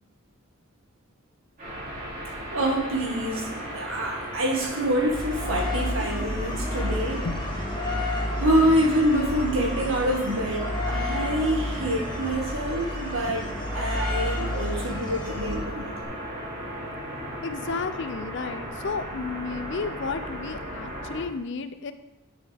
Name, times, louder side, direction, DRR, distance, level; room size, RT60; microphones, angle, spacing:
sound 1, 1.6-21.2, equal, 40° right, 2.9 m, -36 dB
voice 1, 2.5-7.3 8.4-16.1, right 1 dB, 70° right, 0 dB, 1.7 m, -26 dB
sound 2, 5.1-16.0, left 1 dB, 20° left, 1.1 m, -31 dB
voice 2, 17.4-21.9, left 4 dB, 55° left, 11 dB, 0.5 m, -32 dB
9.2 x 6.3 x 3.5 m, 0.88 s
head